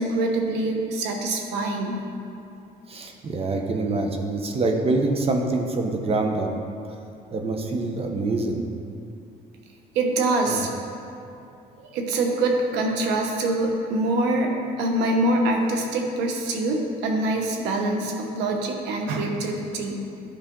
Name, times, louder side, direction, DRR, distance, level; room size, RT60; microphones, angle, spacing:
voice 1, 0.0-2.0 9.9-10.7 11.8-14.5 14.8-20.0, right 2 dB, 90° right, 2 dB, 1.1 m, -24 dB
voice 2, 2.9-6.5 7.3-8.6 10.5-10.7, right 2 dB, 35° right, 3 dB, 0.9 m, -25 dB
11.5 x 5.0 x 3.8 m, 2.7 s
cardioid pair, 110°, 17 cm